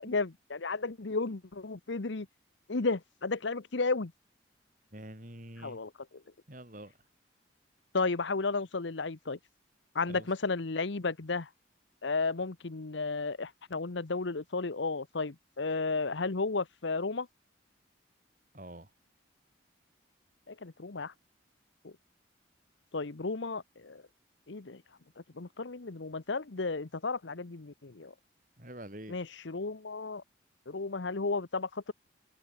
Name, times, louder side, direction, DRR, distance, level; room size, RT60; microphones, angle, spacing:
voice 1, 0.0-2.3 2.7-4.1 5.6-5.9 7.9-9.4 9.9-11.5 12.0-17.3 20.5-21.1 21.8-21.9 22.9-24.0 24.5-24.8 25.3-28.1 29.1-30.2 30.7-31.9, left 3 dB, 70° left, 1.0 m, -33 dB
voice 2, 4.9-5.8 6.5-6.9 10.1-10.3 18.5-18.9 28.6-29.2, right 1 dB, 45° right, 5.0 m, -46 dB
head